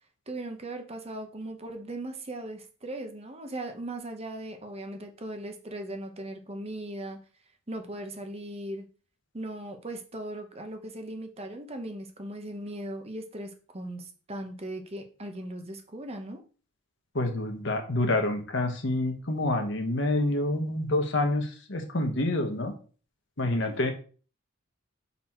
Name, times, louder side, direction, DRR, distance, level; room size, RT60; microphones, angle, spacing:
voice 1, 0.3-7.2 7.7-8.9 9.3-16.4 23.6-23.8, right 1 dB, 30° right, 5 dB, 0.8 m, -38 dB
voice 2, 17.1-22.7 23.4-23.9, left 2 dB, 60° left, 5 dB, 1.3 m, -27 dB
6.0 x 4.1 x 4.4 m, 0.38 s
head